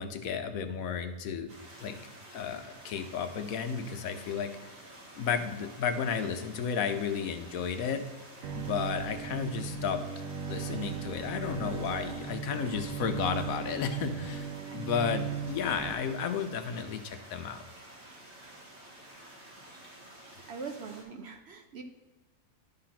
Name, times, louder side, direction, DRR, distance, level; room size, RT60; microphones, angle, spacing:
voice 1, 0.0-1.5 1.8-2.0 2.3-4.5 5.2-8.0 8.5-10.0 10.5-17.6, left 7 dB, 65° left, 8 dB, 1.1 m, -33 dB
sound 1, 1.5-21.0, right 1 dB, 45° right, 2.3 m, -51 dB
Bowed string instrument, 8.4-15.9, right 7 dB, 85° right, 1.2 m, -37 dB
voice 2, 20.5-21.8, right 5 dB, 60° right, 5 dB, 0.7 m, -42 dB
11.0 x 3.9 x 5.8 m, 1.2 s
omnidirectional pair, 1.7 m